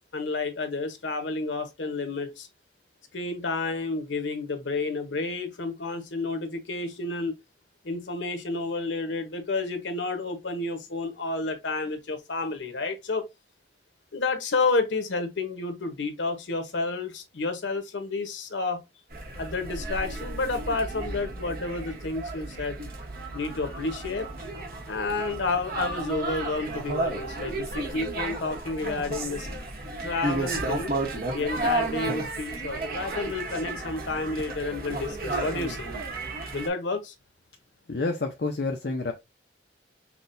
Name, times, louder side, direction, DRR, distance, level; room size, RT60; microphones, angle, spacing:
voice 1, 0.1-2.5 3.1-7.4 7.8-13.3 14.1-18.8 19.4-22.8 23.3-24.3 24.9-29.5 30.0-30.9 31.3-35.9 36.5-37.1, left 3 dB, 90° left, 0.9 m, -30 dB
sound 1, 19.1-36.7, right 2 dB, 55° right, 1.0 m, -33 dB
voice 2, 37.9-39.1, left 3 dB, 60° left, 0.6 m, -28 dB
5.8 x 2.2 x 2.6 m
head